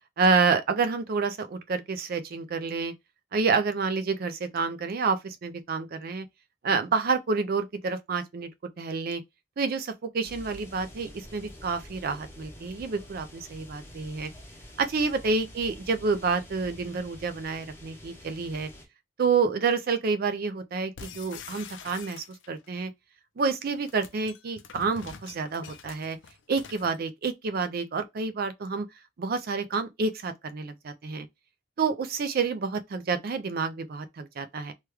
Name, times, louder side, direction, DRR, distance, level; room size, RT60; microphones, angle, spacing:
voice 1, 0.2-2.9 3.3-6.3 6.6-8.5 8.8-9.2 9.6-14.3 14.8-18.7 19.2-22.9 23.4-26.2 26.5-28.9 29.2-31.3 31.8-34.7, right 4 dB, 50° right, 0.4 m, -28 dB
sound 1, 10.2-18.9, equal, 10° left, 0.7 m, -47 dB
window break with axe glass shatter in trailer, 21.0-22.7 23.7-27.0, left 6 dB, 70° left, 0.4 m, -45 dB
3.0 x 2.3 x 3.2 m
head